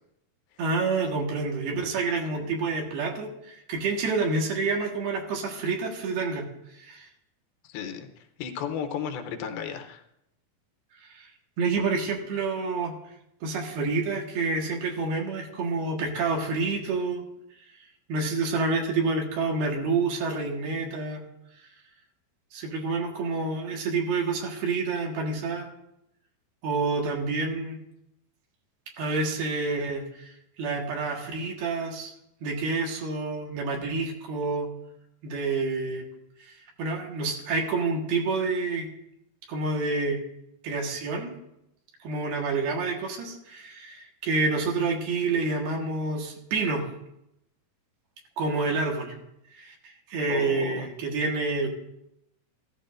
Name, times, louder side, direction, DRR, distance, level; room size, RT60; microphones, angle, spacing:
voice 1, 0.6-6.5 6.8-7.1 11.0-11.3 11.6-13.0 13.4-17.2 18.1-21.3 22.5-25.7 26.6-27.8 29.0-30.3 30.6-32.1 32.4-34.7 35.2-36.1 36.4-38.9 39.5-40.2 40.6-41.4 42.0-46.9 48.4-49.2 49.5-51.7, right 3 dB, 90° right, 1 dB, 3.5 m, -28 dB
voice 2, 7.6-10.0 50.3-50.9, left 7 dB, 80° left, 5 dB, 2.6 m, -34 dB
14.5 x 14.0 x 2.6 m, 0.83 s
omnidirectional pair, 4.3 m